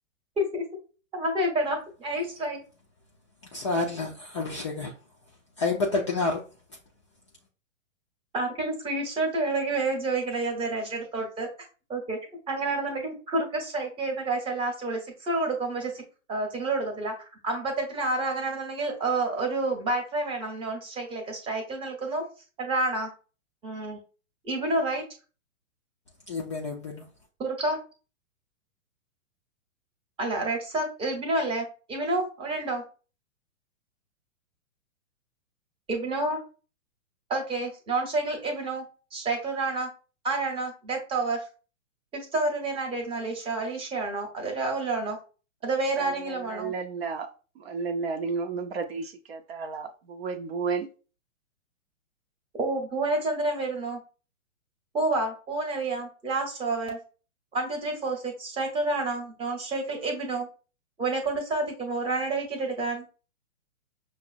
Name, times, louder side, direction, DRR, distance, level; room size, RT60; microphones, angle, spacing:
voice 1, 1.1-2.6 8.3-11.5 11.9-12.2 12.5-16.0 16.3-17.1 17.4-22.2 22.6-23.1 23.6-24.0 24.4-25.0 27.4-27.8 30.2-32.8 35.9-36.4 37.3-38.8 39.1-39.9 40.2-41.4 42.1-45.2 45.6-46.7 52.6-54.0 54.9-57.0 57.5-60.5 61.0-63.0, right 2 dB, 15° right, 0.8 m, -29 dB
voice 2, 3.5-4.9 5.6-6.4 26.3-27.0, left 3 dB, 25° left, 0.3 m, -29 dB
voice 3, 46.0-47.3 47.6-50.9, right 5 dB, 50° right, 0.6 m, -32 dB
5.8 x 2.0 x 2.5 m
hypercardioid pair, 125°, 41 cm